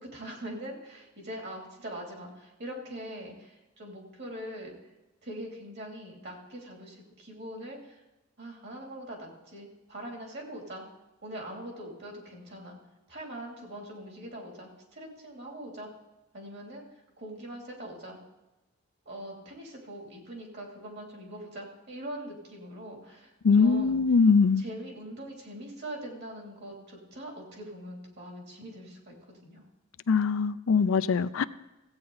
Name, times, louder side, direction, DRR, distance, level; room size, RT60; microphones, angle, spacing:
voice 1, 0.0-4.7 5.2-8.0 8.4-10.8 11.2-12.8 13.1-15.9 16.3-18.2 19.0-24.0 24.6-29.6, right 1 dB, 50° right, 0 dB, 3.0 m, -42 dB
voice 2, 23.4-24.6 30.1-31.4, left 5 dB, 70° left, 14 dB, 0.4 m, -22 dB
15.0 x 8.8 x 4.0 m, 1.0 s
head